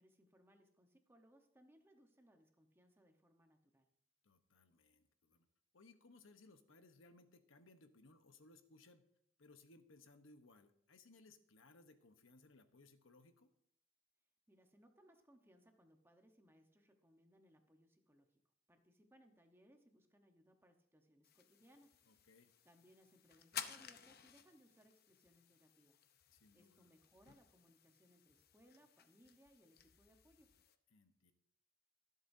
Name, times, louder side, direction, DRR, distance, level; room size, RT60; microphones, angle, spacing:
voice 1, 0.0-3.9 14.5-18.4 18.7-22.0 22.6-26.0 26.5-30.6, equal, 10° right, 4 dB, 1.0 m, -69 dB
voice 2, 4.2-5.4 5.7-9.0 9.4-13.5 22.1-22.5 26.3-26.9 30.9-31.3, left 3 dB, 70° left, 8 dB, 1.0 m, -65 dB
sound 1, 21.2-30.8, left 9 dB, 50° left, 0.7 m, -55 dB
23.5 x 8.0 x 2.7 m, 0.69 s
head